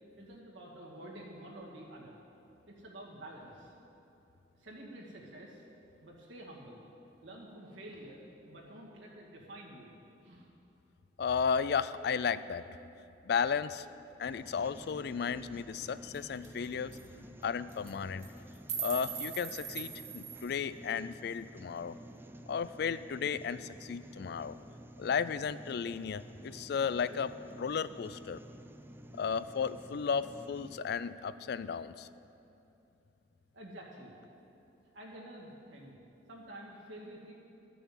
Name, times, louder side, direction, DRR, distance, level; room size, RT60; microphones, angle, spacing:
voice 1, 0.2-2.2 2.7-3.7 4.5-5.6 6.0-6.8 7.2-9.9 10.2-10.5 20.4-20.5 33.5-34.1 34.9-35.9 36.3-37.3, right 1 dB, 80° right, -3 dB, 2.1 m, -49 dB
voice 2, 11.2-12.6 13.3-13.9 14.2-17.0 17.4-18.2 18.8-22.0 22.5-24.6 25.0-28.4 29.2-32.1, left 6 dB, 55° left, 15 dB, 0.3 m, -34 dB
sound 1, 14.2-30.8, equal, 10° right, 0.4 m, -51 dB
sound 2, 15.8-15.9 16.1-16.2 16.4-16.7 16.9-17.1 17.7-17.9 18.2-20.5, right 7 dB, 35° right, 1.2 m, -40 dB
12.5 x 6.9 x 7.4 m, 2.8 s
head